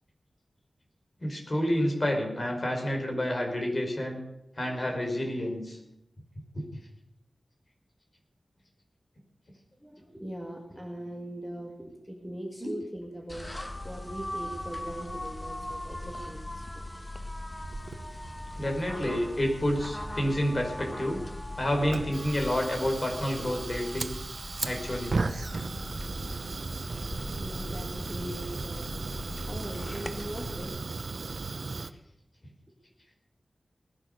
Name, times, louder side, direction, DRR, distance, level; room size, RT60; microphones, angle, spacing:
voice 1, 1.2-4.2 4.5-5.8 6.5-6.6 12.6-12.7 18.6-21.2 21.6-24.1 24.6-25.1, equal, 40° left, 2 dB, 4.9 m, -29 dB
voice 2, 9.8-16.7 17.5-17.7 17.9-18.1 25.7-26.4 27.4-28.9 29.4-30.8, right 1 dB, 5° left, 1 dB, 2.5 m, -41 dB
sound 1, 13.3-30.6, left 1 dB, 20° left, 1.6 m, -40 dB
Fire, 17.6-31.9, right 3 dB, 70° right, 0.9 m, -37 dB
19.0 x 10.5 x 6.7 m, 0.83 s
wide cardioid pair, 70°, 0 cm